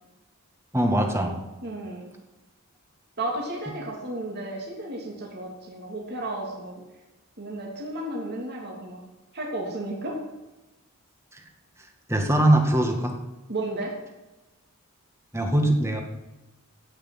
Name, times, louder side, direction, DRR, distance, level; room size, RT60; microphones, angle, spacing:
voice 1, 0.7-1.4 11.3-11.4 12.1-13.1 15.3-16.0, right 1 dB, 10° right, 3 dB, 1.9 m, -21 dB
voice 2, 1.6-2.1 3.2-6.8 7.4-9.0 9.3-10.2 13.5-13.9, right 1 dB, 50° right, -2 dB, 3.2 m, -33 dB
17.0 x 6.5 x 8.0 m, 1.0 s
head